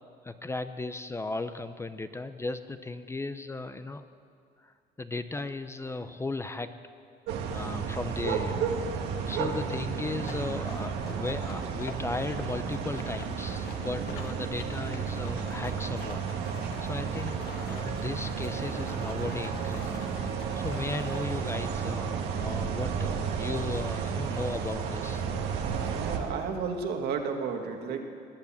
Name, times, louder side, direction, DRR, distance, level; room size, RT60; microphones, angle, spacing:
voice 1, 0.2-4.1 4.6-6.7 7.5-8.7 9.3-16.3 16.8-17.4 17.7-20.0 20.5-25.2, left 3 dB, 15° left, 10 dB, 0.6 m, -36 dB
sound 1, 7.3-26.2, right 6 dB, 90° right, 1.5 m, -32 dB
sound 2, 10.1-21.3, left 6 dB, 75° left, 1.4 m, -48 dB
voice 2, 26.0-28.0, right 5 dB, 75° right, 3 dB, 1.8 m, -32 dB
20.5 x 8.2 x 7.2 m, 2.4 s
cardioid pair, 110°, 17 cm